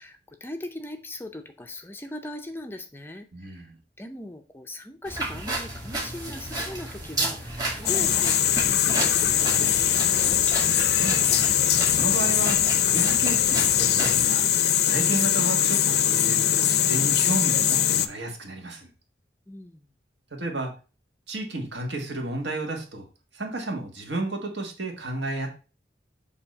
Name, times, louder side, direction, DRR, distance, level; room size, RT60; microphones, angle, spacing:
voice 1, 0.0-3.7 4.0-10.4 19.5-19.8, left 1 dB, 10° left, 6 dB, 0.4 m, -40 dB
voice 2, 3.3-3.7 10.8-11.5 11.9-12.6 12.8-14.5 14.9-18.9 20.4-20.7 21.3-23.1 23.3-25.5, right 2 dB, 75° right, 2 dB, 1.5 m, -32 dB
sound 1, 5.0-14.2, right 2 dB, 20° right, 1.6 m, -33 dB
sound 2, 7.9-18.1, left 10 dB, 65° left, 0.5 m, -22 dB
7.1 x 2.8 x 5.3 m, 0.34 s
head